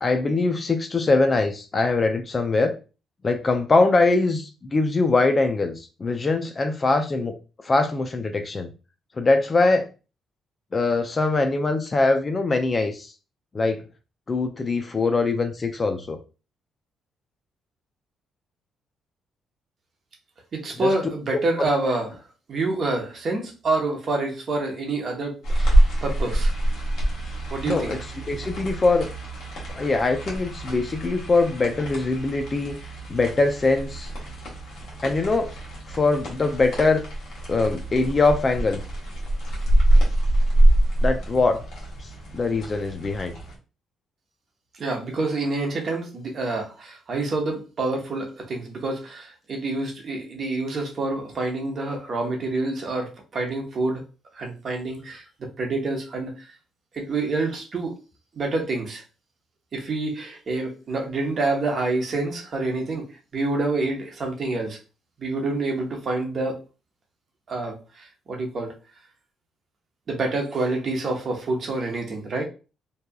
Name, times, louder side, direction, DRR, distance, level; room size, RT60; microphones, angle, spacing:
voice 1, 0.0-2.8 3.2-7.3 7.6-8.7 9.2-9.9 10.7-13.1 13.5-13.8 14.3-16.2 20.8-20.9 21.6-21.7 27.7-28.0 28.3-29.1 29.7-32.8 33.1-34.1 35.0-35.5 35.9-37.0 37.5-38.8 41.0-41.6 42.3-43.4, left 3 dB, 30° left, 0.4 m, -22 dB
voice 2, 20.5-22.1 22.5-26.5 27.5-27.9 44.8-54.0 54.3-56.5 56.9-58.0 58.4-59.0 59.7-63.1 63.3-64.8 65.2-66.6 67.5-68.7 70.1-72.5, right 2 dB, 50° right, 0.8 m, -27 dB
sound 1, 25.4-43.6, right 1 dB, 70° left, 1.1 m, -25 dB
2.7 x 2.3 x 2.2 m
cardioid pair, 90°, 0 cm